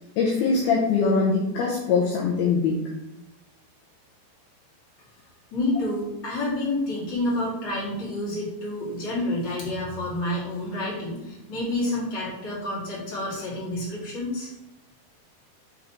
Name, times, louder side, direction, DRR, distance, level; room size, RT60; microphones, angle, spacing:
voice 1, 0.2-2.8, left 4 dB, 75° left, -3 dB, 2.5 m, -22 dB
voice 2, 5.5-14.5, left 1 dB, 30° left, -8 dB, 2.6 m, -29 dB
6.8 x 3.9 x 4.4 m, 0.94 s
omnidirectional pair, 5.0 m